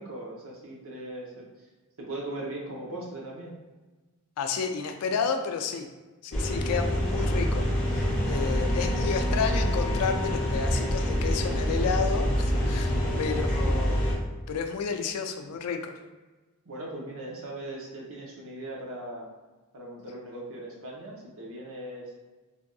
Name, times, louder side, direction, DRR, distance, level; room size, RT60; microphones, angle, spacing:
voice 1, 0.0-1.4 2.0-3.5 12.9-13.2 16.6-19.3 19.7-22.1, right 1 dB, 65° right, -3 dB, 0.8 m, -39 dB
voice 2, 4.4-5.9 6.2-7.6 8.2-14.1 14.5-15.9, left 6 dB, 80° left, 6 dB, 0.4 m, -31 dB
sound 1, 6.3-14.1, equal, 10° left, 1.2 m, -26 dB
3.3 x 2.6 x 2.3 m, 1.2 s
head